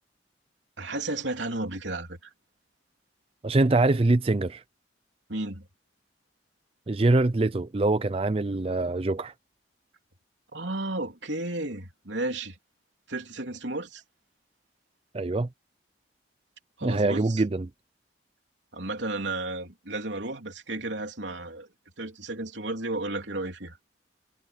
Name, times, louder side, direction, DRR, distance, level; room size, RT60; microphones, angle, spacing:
voice 1, 0.8-2.3 5.3-5.7 10.5-12.6 13.1-14.0 16.8-17.4 18.7-21.7 22.0-23.8, right 2 dB, 80° right, 3.4 m, -33 dB
voice 2, 3.4-4.6 6.9-9.3 15.1-15.5 16.8-17.7, right 2 dB, 30° right, 0.5 m, -24 dB
head